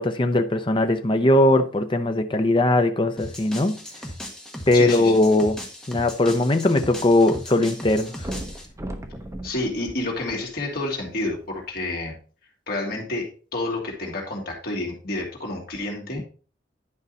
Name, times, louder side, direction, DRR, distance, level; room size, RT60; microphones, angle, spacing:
voice 1, 0.0-3.8 4.7-5.6 5.9-8.3, left 1 dB, 25° left, 0.6 m, -20 dB
sound 1, 3.2-8.7, equal, 5° left, 1.5 m, -38 dB
voice 2, 4.7-5.1 9.4-12.2 12.7-16.2, left 2 dB, 50° left, 2.7 m, -29 dB
sound 2, 6.0-7.4 7.7-7.8 8.2-10.8 11.5-11.6, right 1 dB, 15° right, 1.0 m, -37 dB
11.0 x 5.4 x 4.1 m
head